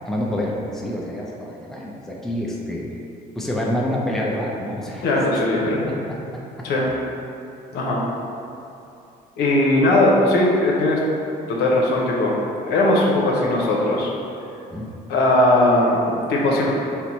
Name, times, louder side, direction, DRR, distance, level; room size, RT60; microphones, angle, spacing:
voice 1, 0.1-2.8 3.4-5.0 5.8-6.2 6.6-6.7 14.7-14.9, left 1 dB, ahead, -3 dB, 0.5 m, -27 dB
voice 2, 5.0-5.8 6.6-6.9 7.7-8.1 9.4-11.0 11.5-12.4 12.7-14.1 15.1-16.7, left 1 dB, 80° left, -3 dB, 0.8 m, -19 dB
4.4 x 2.1 x 4.0 m, 2.7 s
cardioid pair, 110°, 17 cm